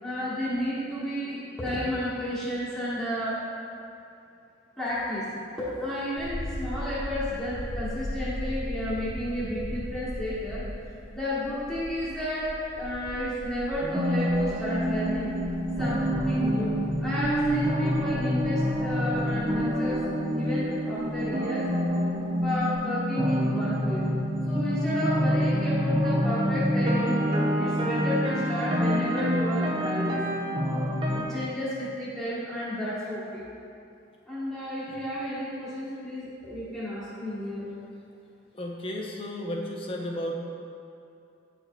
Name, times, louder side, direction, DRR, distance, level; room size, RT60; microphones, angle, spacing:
voice 1, 0.0-3.4 4.8-5.3 5.6-10.6 11.1-15.3 15.8-20.0 20.3-21.7 22.4-24.1 24.5-27.2 27.5-30.2 31.1-33.4 34.3-37.7, left 1 dB, 5° left, -11 dB, 1.1 m, -32 dB
sound 1, 6.2-21.9 22.2-22.8, equal, 70° left, 1.3 m, -39 dB
sound 2, 13.8-31.2, equal, 25° right, 0.5 m, -27 dB
voice 2, 38.5-40.3, left 1 dB, 30° left, 0 dB, 0.5 m, -33 dB
9.1 x 4.7 x 2.2 m, 2.6 s
head